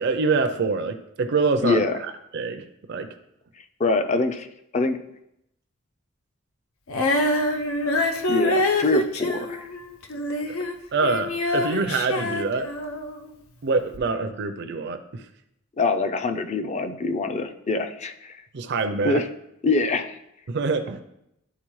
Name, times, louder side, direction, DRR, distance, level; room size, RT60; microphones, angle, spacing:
voice 1, 0.0-3.1 10.5-10.6 10.9-12.7 13.6-15.3 18.5-19.2 20.5-21.0, right 4 dB, 55° right, 7 dB, 0.5 m, -25 dB
voice 2, 1.6-2.0 3.8-4.5 4.7-5.0 8.3-9.7 15.8-18.4 19.0-19.3 19.6-20.2, left 3 dB, 35° left, 7 dB, 0.4 m, -24 dB
Female singing, 6.9-13.2 13.9-14.0, left 1 dB, 80° left, 0.6 m, -25 dB
11.0 x 4.0 x 3.1 m, 0.81 s
head